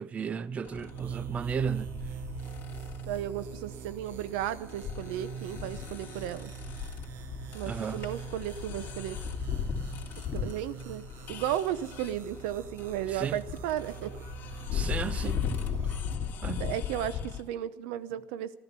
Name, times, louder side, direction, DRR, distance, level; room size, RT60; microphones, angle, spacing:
voice 1, 0.0-1.9 7.7-8.1 13.1-13.4 14.7-15.4 16.4-16.7, right 6 dB, 25° right, 0.4 m, -34 dB
sound 1, 0.6-17.4, left 8 dB, 40° left, 2.6 m, -38 dB
sound 2, 0.8-16.2, right 10 dB, 50° right, 1.0 m, -43 dB
voice 2, 3.1-6.5 7.5-9.2 10.3-14.1 16.6-18.5, right 11 dB, 90° right, 0.8 m, -34 dB
15.0 x 13.5 x 6.7 m
cardioid pair, 140°, 5 cm